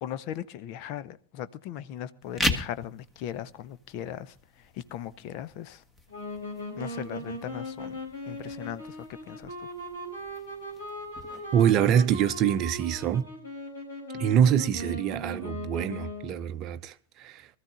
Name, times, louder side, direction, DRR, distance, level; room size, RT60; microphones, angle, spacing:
voice 1, 0.0-5.8 6.8-8.0 8.3-9.7, left 11 dB, 45° left, 0.7 m, -38 dB
sound 1, 2.2-13.2, left 1 dB, 10° left, 1.5 m, -39 dB
sound 2, 6.1-16.4, equal, 70° left, 5.8 m, -39 dB
voice 2, 11.5-13.3 14.1-17.5, right 9 dB, 35° right, 0.7 m, -25 dB
23.5 x 14.0 x 2.4 m
figure-of-eight pair, 90°, 0 cm